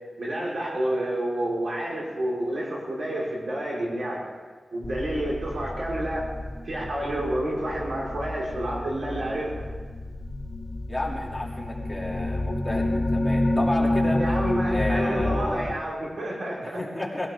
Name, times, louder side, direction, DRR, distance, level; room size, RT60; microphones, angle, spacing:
voice 1, 0.2-4.3 4.7-6.3 6.6-9.6 14.2-16.8, right 1 dB, 80° right, -4 dB, 5.1 m, -29 dB
sound 1, 4.8-15.7, left 1 dB, 55° left, 1.9 m, -29 dB
voice 2, 10.9-14.2 14.7-15.7 16.6-17.3, left 1 dB, 5° left, -4 dB, 3.0 m, -31 dB
22.0 x 17.0 x 3.7 m, 1.5 s
wide cardioid pair, 100°, 0 cm